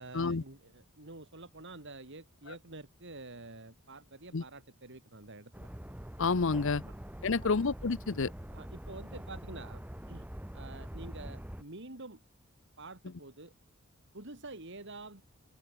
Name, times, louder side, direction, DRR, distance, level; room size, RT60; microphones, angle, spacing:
voice 1, 0.0-5.7 6.8-6.9 7.3-7.6 8.5-9.8 10.1-10.3 10.5-12.2 12.8-13.5 14.1-15.2, right 2 dB, 60° right, 4.0 m, -48 dB
sound 1, 5.5-11.6, equal, 10° right, 1.0 m, -44 dB
voice 2, 6.2-6.8 7.2-8.3, left 4 dB, 65° left, 0.8 m, -29 dB
open air
head